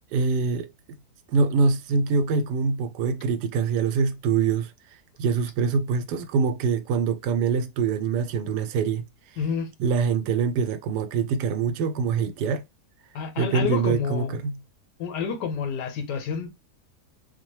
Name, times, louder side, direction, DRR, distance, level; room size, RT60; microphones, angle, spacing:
voice 1, 0.1-0.7 1.3-4.7 5.2-9.0 9.8-12.6 13.4-14.6, right 5 dB, 85° right, 1.2 m, -24 dB
voice 2, 9.4-9.7 13.1-14.3 15.0-16.5, left 6 dB, 90° left, 1.4 m, -29 dB
4.2 x 2.1 x 3.1 m
omnidirectional pair, 1.8 m